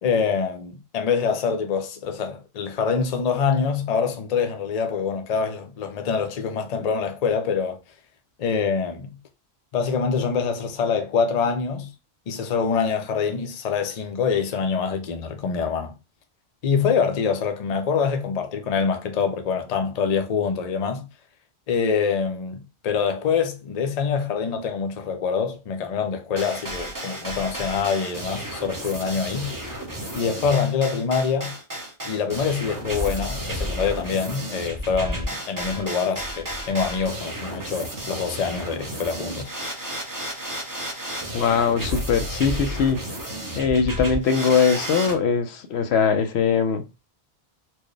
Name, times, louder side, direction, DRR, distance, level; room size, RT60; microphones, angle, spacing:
voice 1, 0.0-7.8 8.4-9.1 9.7-11.9 12.3-15.9 16.6-21.1 21.7-29.5 30.1-31.5 32.0-39.5, left 6 dB, 45° left, 0.6 m, -25 dB
sound 1, 26.4-45.2, equal, 20° right, 0.8 m, -32 dB
voice 2, 41.3-43.0 43.6-46.8, left 6 dB, 85° left, 0.9 m, -21 dB
4.4 x 2.1 x 3.1 m
omnidirectional pair, 1.1 m